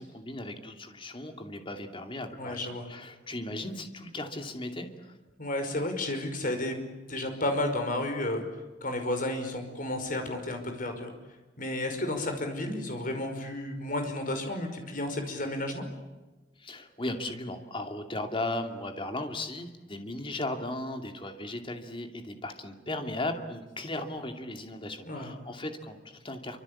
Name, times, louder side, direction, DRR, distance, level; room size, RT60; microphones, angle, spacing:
voice 1, 0.0-5.2 16.6-26.6, left 1 dB, 30° left, 5 dB, 2.6 m, -36 dB
voice 2, 2.4-2.9 5.4-6.8 7.1-8.4 8.8-11.1 11.6-15.8 25.1-25.3, left 1 dB, 45° left, 5 dB, 5.4 m, -32 dB
27.5 x 25.5 x 8.6 m, 1.2 s
head